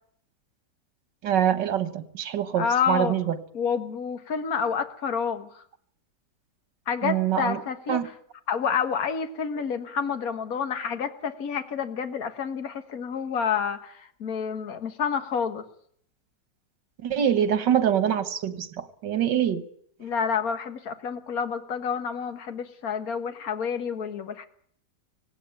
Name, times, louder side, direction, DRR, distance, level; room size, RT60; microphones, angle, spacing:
voice 1, 1.2-3.4 7.0-7.6 7.9-8.1 17.0-19.6, right 9 dB, 90° right, 2.0 m, -25 dB
voice 2, 2.6-3.1 3.5-5.6 6.9-8.0 8.5-15.7 20.0-24.5, left 6 dB, 55° left, 1.9 m, -29 dB
18.5 x 17.0 x 8.9 m
omnidirectional pair, 1.8 m